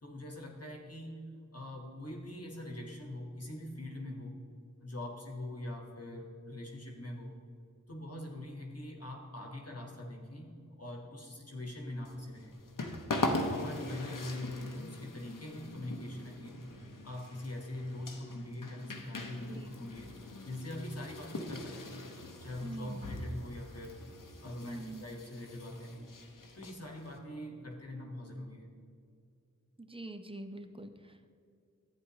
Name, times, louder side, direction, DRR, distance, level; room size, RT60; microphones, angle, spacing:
voice 1, 0.0-1.2 1.5-4.4 4.8-7.4 7.9-12.5 13.3-16.7 17.0-20.1 20.4-22.1 22.4-24.1 24.4-26.1 26.5-28.7, left 1 dB, 50° left, 1 dB, 1.2 m, -43 dB
sound 1, 12.0-27.2, left 2 dB, 80° left, 0.8 m, -41 dB
voice 2, 22.6-23.2 24.6-25.1 29.8-31.3, right 2 dB, 15° right, 7 dB, 0.7 m, -45 dB
11.5 x 8.6 x 2.8 m, 2.4 s
wide cardioid pair, 45°, 32 cm